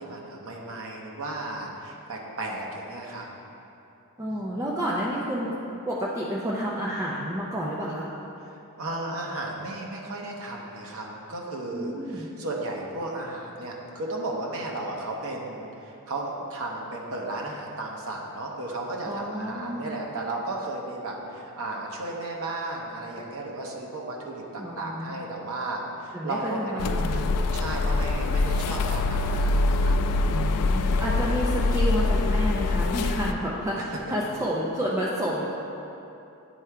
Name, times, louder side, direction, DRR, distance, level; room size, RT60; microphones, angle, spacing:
voice 1, 0.0-3.3 4.3-4.4 8.8-27.2 27.5-30.0 33.8-33.9, right 2 dB, 70° right, -1 dB, 0.9 m, -34 dB
voice 2, 4.2-5.6 5.9-8.1 11.7-12.3 19.0-20.0 24.6-25.2 26.1-27.4 30.3-35.5, equal, 15° right, -5 dB, 0.5 m, -30 dB
sound 1, 26.8-33.3, left 3 dB, 75° left, 0.3 m, -24 dB
9.0 x 3.4 x 4.7 m, 2.9 s
head